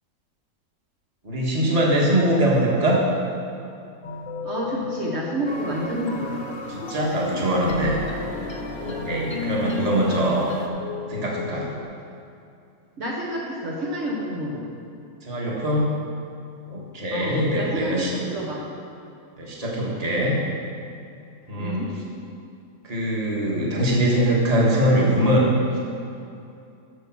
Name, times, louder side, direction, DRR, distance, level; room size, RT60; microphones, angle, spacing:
voice 1, 1.2-3.0 6.7-8.0 8.8-10.5 11.1-11.7 15.2-15.9 16.7-18.1 19.4-20.4 21.5-21.8 22.8-25.5, right 1 dB, 25° right, -4 dB, 1.6 m, -22 dB
sound 1, 4.0-11.8, left 4 dB, 60° left, 1.3 m, -36 dB
voice 2, 4.4-6.5 13.0-14.7 17.1-18.6 21.6-21.9, equal, 60° right, -4 dB, 1.5 m, -29 dB
sound 2, 5.5-10.7, left 2 dB, 35° left, 0.4 m, -34 dB
8.1 x 7.0 x 6.1 m, 2.6 s
omnidirectional pair, 1.5 m